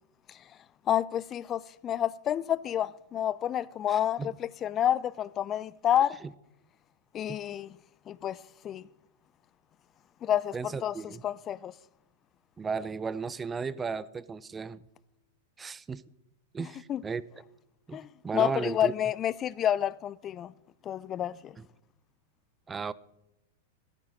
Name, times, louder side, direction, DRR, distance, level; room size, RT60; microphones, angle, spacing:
voice 1, 0.9-6.2 7.1-7.8 8.1-8.9 10.2-11.7 16.9-17.0 17.9-20.5 20.8-21.6, left 10 dB, 30° left, 0.4 m, -29 dB
voice 2, 3.9-4.3 7.3-7.4 10.5-11.2 12.6-14.8 15.6-16.0 16.5-17.2 17.9-18.0 18.2-18.9 21.6-21.7 22.7-22.9, right 5 dB, 15° right, 0.6 m, -35 dB
14.5 x 14.5 x 4.1 m
hypercardioid pair, 100°, 0 cm